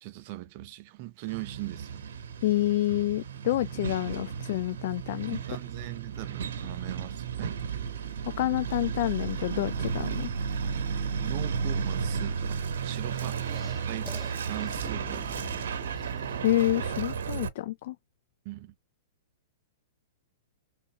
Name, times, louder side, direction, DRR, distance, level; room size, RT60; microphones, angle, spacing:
voice 1, 0.0-2.0 3.7-3.8 5.3-7.6 11.2-13.4 13.8-14.1 14.4-15.7 18.4-18.7, right 17 dB, 50° right, 0.6 m, -40 dB
Truck, 1.3-17.5, right 6 dB, 80° right, 0.9 m, -33 dB
voice 2, 2.4-5.4 8.4-10.3 16.4-18.0, left 15 dB, 60° left, 0.4 m, -28 dB
sound 1, 13.1-16.7, equal, 5° right, 0.6 m, -45 dB
3.6 x 2.4 x 2.8 m
hypercardioid pair, 135°, 0 cm